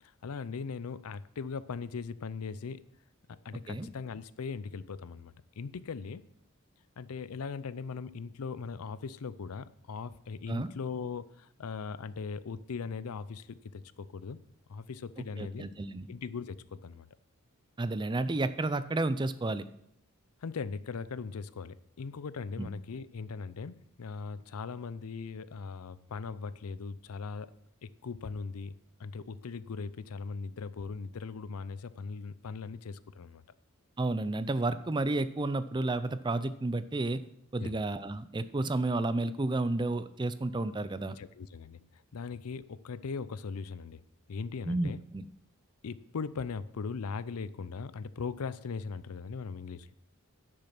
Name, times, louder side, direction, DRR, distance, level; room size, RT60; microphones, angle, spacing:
voice 1, 0.0-2.8 3.3-6.3 7.0-14.4 14.7-15.7 16.1-17.1 20.4-27.5 27.8-33.4 37.6-37.8 41.1-44.0 44.3-45.0 45.8-49.9, left 5 dB, 90° left, 16 dB, 0.5 m, -39 dB
voice 2, 15.4-16.1 17.8-19.6 22.6-22.7 34.0-37.2 37.5-41.2 44.6-45.3, right 2 dB, 20° right, 13 dB, 0.4 m, -31 dB
10.0 x 6.5 x 5.9 m, 0.73 s
head